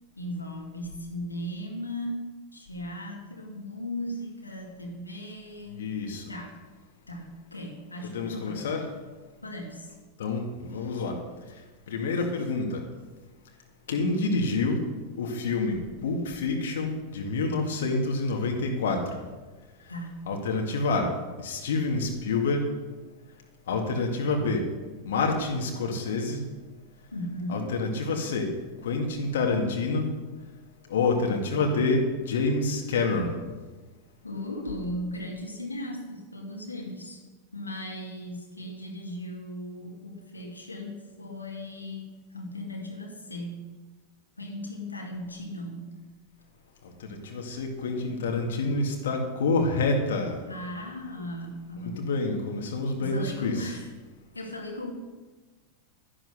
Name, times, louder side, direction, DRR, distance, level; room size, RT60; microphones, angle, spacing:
voice 1, 0.2-5.8 6.3-6.5 7.1-8.7 9.4-9.9 10.7-11.0 19.9-20.3 27.1-27.8 34.2-37.2 37.5-43.6 44.4-46.0 50.5-52.1 53.0-53.9 54.3-54.9, left 1 dB, 85° left, 1 dB, 2.1 m, -37 dB
voice 2, 5.8-6.2 8.0-8.9 10.2-11.2 11.9-12.8 13.9-14.8 15.2-19.0 20.3-21.1 21.4-22.6 23.7-24.6 25.0-26.4 27.5-28.5 28.8-30.1 30.9-33.4 47.0-50.4 51.8-53.7, left 3 dB, 65° left, 2 dB, 2.1 m, -27 dB
12.5 x 11.0 x 6.6 m, 1.3 s
figure-of-eight pair, 90°, 0 cm